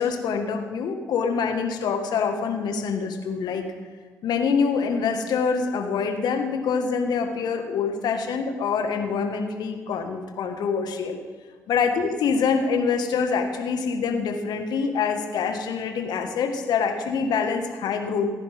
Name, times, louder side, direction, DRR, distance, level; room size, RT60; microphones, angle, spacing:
voice 1, 0.0-3.6 4.2-11.2 11.7-18.3, left 5 dB, 65° left, 5 dB, 1.8 m, -25 dB
28.5 x 10.5 x 3.7 m, 1.5 s
hypercardioid pair, 40°, 8 cm